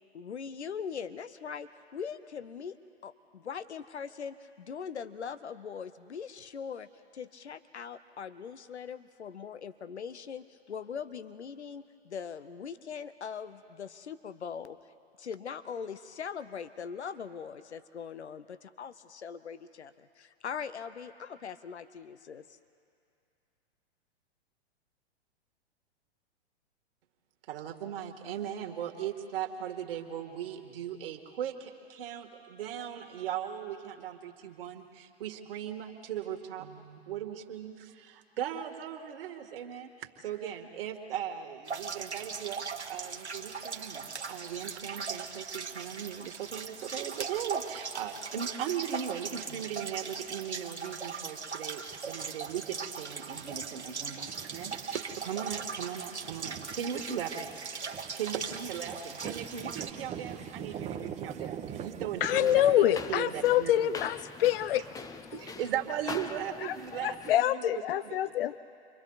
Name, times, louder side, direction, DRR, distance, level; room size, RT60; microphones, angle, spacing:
voice 1, 0.1-2.8 3.0-6.9 7.1-14.8 15.2-22.4, left 6 dB, 80° left, 13 dB, 0.9 m, -41 dB
voice 2, 27.5-57.5 58.1-64.0 65.3-68.2, right 9 dB, 60° right, 3 dB, 2.2 m, -38 dB
sound 1, 41.7-59.9, right 5 dB, 90° right, 1.4 m, -39 dB
sound 2, 51.9-62.7, right 8 dB, 20° right, 1.1 m, -44 dB
voice 3, 62.2-64.8 65.3-65.4 66.6-68.6, left 12 dB, 55° left, 17 dB, 0.6 m, -26 dB
sound 3, 62.3-67.3, left 5 dB, 10° left, 0.5 m, -43 dB
29.5 x 24.0 x 4.1 m, 2.5 s
figure-of-eight pair, 110°, 33 cm